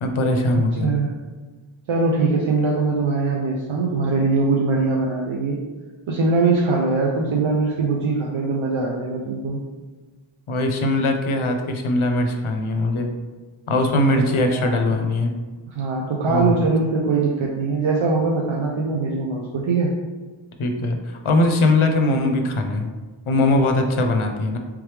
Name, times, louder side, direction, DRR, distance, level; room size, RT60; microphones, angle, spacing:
voice 1, 0.0-1.0 10.5-13.1 13.7-15.3 16.3-16.5 20.6-22.9 23.3-24.6, left 2 dB, 85° left, 4 dB, 0.6 m, -20 dB
voice 2, 0.8-1.1 1.9-5.6 6.1-9.6 14.1-15.0 15.7-19.9, right 3 dB, 75° right, -1 dB, 0.6 m, -22 dB
3.5 x 3.2 x 3.2 m, 1.3 s
wide cardioid pair, 50°, 48 cm